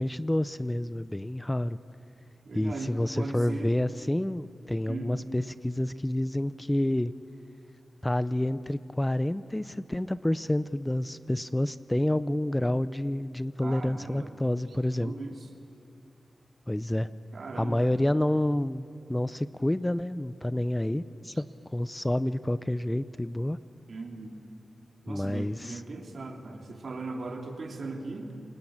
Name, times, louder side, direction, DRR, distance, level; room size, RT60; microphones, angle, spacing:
voice 1, 0.0-1.8 2.5-7.1 8.0-15.1 16.7-17.1 17.5-21.4 21.7-23.6 25.1-25.8, left 1 dB, 15° left, 15 dB, 0.6 m, -29 dB
voice 2, 2.5-3.7 4.9-5.3 13.6-14.3 15.0-15.4 17.3-17.9 23.9-24.4 25.0-28.4, right 3 dB, 65° right, 3 dB, 3.1 m, -38 dB
29.5 x 20.0 x 8.8 m, 2.6 s
cardioid pair, 70°, 0 cm